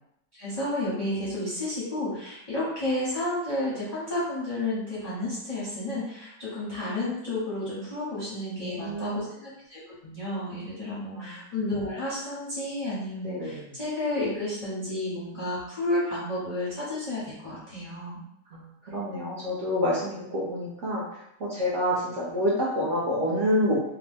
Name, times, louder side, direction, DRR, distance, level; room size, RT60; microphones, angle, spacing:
voice 1, 0.3-18.2, left 1 dB, 35° left, -9 dB, 0.6 m, -31 dB
voice 2, 8.6-9.2 11.1-11.4 13.2-13.7 18.5-18.7 18.9-21.0 21.4-23.9, equal, 55° right, -7 dB, 0.9 m, -27 dB
2.9 x 2.1 x 3.4 m, 0.79 s
omnidirectional pair, 1.8 m